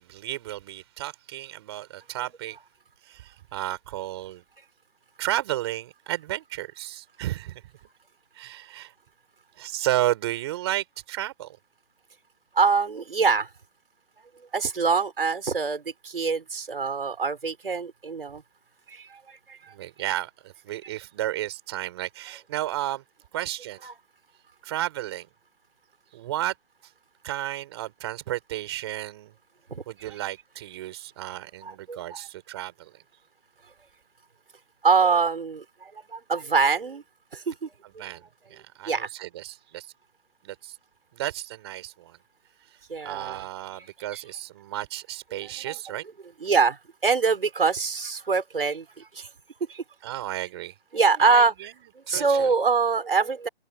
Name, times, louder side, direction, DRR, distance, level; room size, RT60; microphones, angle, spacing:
voice 1, 0.0-2.6 3.0-4.4 5.2-7.6 8.3-8.9 9.6-11.6 19.7-23.0 23.3-23.9 24.6-25.3 26.1-26.5 27.2-29.3 29.9-32.9 38.0-39.9 40.4-40.8 41.1-42.2 43.0-46.0 50.0-50.7 51.2-51.7 52.1-52.5, right 14 dB, 25° right, 5.1 m, -32 dB
voice 2, 12.5-13.5 14.5-18.4 18.9-19.7 23.8-23.9 29.7-29.8 31.6-32.0 34.8-37.0 37.3-37.7 38.8-39.1 42.9-43.5 44.1-44.2 45.6-45.7 46.4-49.3 49.7-49.8 50.9-51.5 52.0-53.5, right 5 dB, 70° right, 6.5 m, -24 dB
open air
hypercardioid pair, 160°, 30 cm